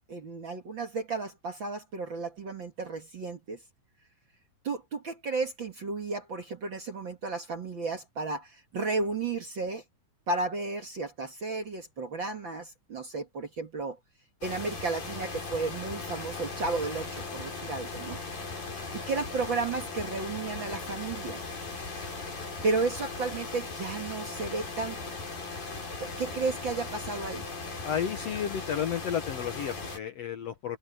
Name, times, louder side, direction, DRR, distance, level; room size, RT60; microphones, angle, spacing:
voice 1, 0.1-3.6 4.6-9.8 10.3-14.0 14.4-18.2 18.9-21.4 22.6-25.1 26.0-27.4, right 3 dB, 45° right, 1.9 m, -33 dB
sound 1, 14.4-30.0, left 3 dB, 80° left, 9.5 m, -38 dB
voice 2, 27.8-30.8, left 9 dB, 60° left, 1.8 m, -32 dB
omnidirectional pair, 4.0 m